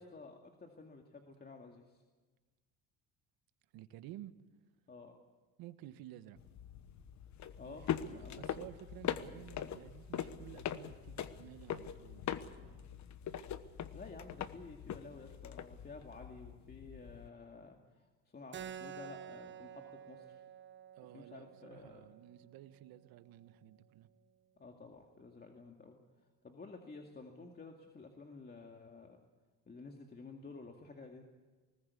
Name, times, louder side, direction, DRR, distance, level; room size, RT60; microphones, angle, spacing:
voice 1, 0.0-2.0 4.9-5.2 7.6-7.8 8.1-8.4 13.9-20.4 21.1-22.1 24.6-26.0 26.4-29.2 29.7-31.2, left 3 dB, 25° left, 3 dB, 2.2 m, -52 dB
voice 2, 3.7-4.3 5.6-6.4 7.6-7.8 8.0-12.3 12.6-13.0 21.0-24.1, right 14 dB, 75° right, 12 dB, 1.3 m, -53 dB
sound 1, 6.4-17.3, left 9 dB, 50° left, 1.2 m, -42 dB
Keyboard (musical), 18.5-23.6, right 9 dB, 30° right, 0.8 m, -51 dB
20.0 x 19.5 x 8.4 m, 1.3 s
cardioid pair, 105°, 36 cm